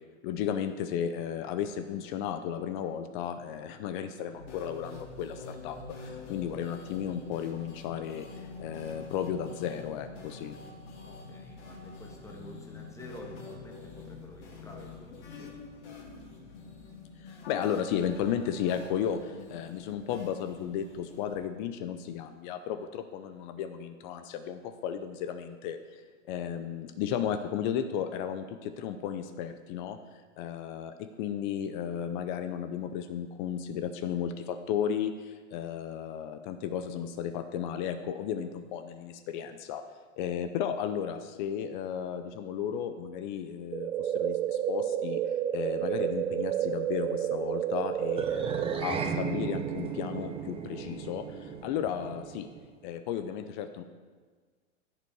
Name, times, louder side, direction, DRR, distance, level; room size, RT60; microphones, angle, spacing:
voice 1, 0.2-5.8 6.0-10.6 17.2-30.0 30.4-39.8 40.2-45.2 45.5-52.5 52.8-53.8, left 9 dB, 40° left, 9 dB, 0.7 m, -34 dB
sound 1, 1.6-21.4, left 4 dB, 65° left, 3.6 m, -46 dB
voice 2, 11.0-15.5, equal, 10° left, 1 dB, 1.7 m, -49 dB
sound 2, 43.7-48.7, right 10 dB, 85° right, 0.7 m, -30 dB
sound 3, 48.1-52.7, right 6 dB, 15° right, 0.9 m, -36 dB
15.5 x 7.0 x 4.7 m, 1.5 s
hypercardioid pair, 130°, 38 cm